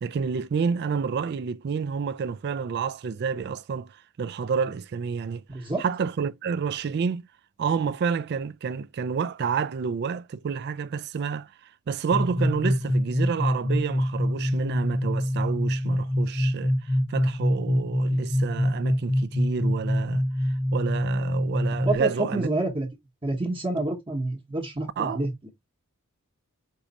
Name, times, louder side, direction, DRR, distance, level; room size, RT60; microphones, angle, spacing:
voice 1, 0.0-7.2 7.6-22.5 25.0-25.2, right 6 dB, 45° right, 0.3 m, -29 dB
voice 2, 5.5-5.8 21.9-22.9 23.2-25.5, right 2 dB, 25° right, 1.0 m, -28 dB
sound 1, 12.1-22.0, equal, 15° left, 0.5 m, -25 dB
4.6 x 2.5 x 4.0 m
head